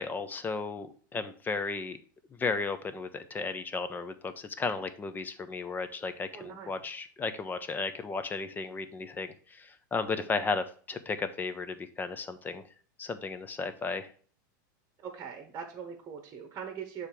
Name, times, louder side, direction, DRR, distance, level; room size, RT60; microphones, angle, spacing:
voice 1, 0.0-2.0 2.4-12.6 13.0-14.1, left 4 dB, 15° left, 11 dB, 0.6 m, -34 dB
voice 2, 6.3-6.7 10.0-10.4 15.0-17.1, right 7 dB, 25° right, 5 dB, 1.0 m, -42 dB
6.5 x 3.5 x 5.7 m, 0.43 s
hypercardioid pair, 125°, 11 cm